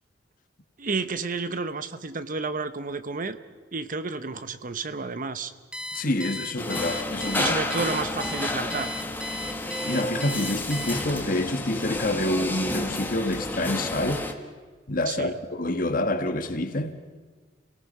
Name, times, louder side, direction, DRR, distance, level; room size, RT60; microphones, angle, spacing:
voice 1, 0.8-3.4 3.7-5.5 7.4-8.9 15.1-15.4, right 4 dB, 50° right, 0.9 m, -31 dB
Alarm, 5.7-11.4, left 1 dB, 5° right, 0.9 m, -36 dB
voice 2, 5.9-7.6 9.6-14.2 14.9-17.0, left 1 dB, 50° left, 1.5 m, -27 dB
sound 1, 6.6-14.3, left 1 dB, 10° left, 1.5 m, -31 dB
29.0 x 18.0 x 5.5 m
head